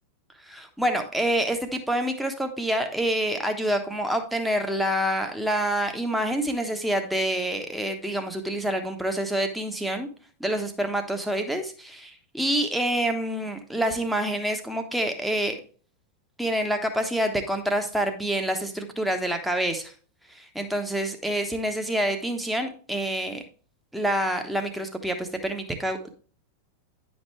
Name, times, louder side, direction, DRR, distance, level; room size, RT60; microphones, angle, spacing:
voice 1, 0.4-10.1 10.4-15.6 16.4-19.9 20.3-23.4 23.9-26.1, right 1 dB, ahead, 5 dB, 1.2 m, -27 dB
9.9 x 5.3 x 3.2 m, 0.41 s
figure-of-eight pair, 90°, 0 cm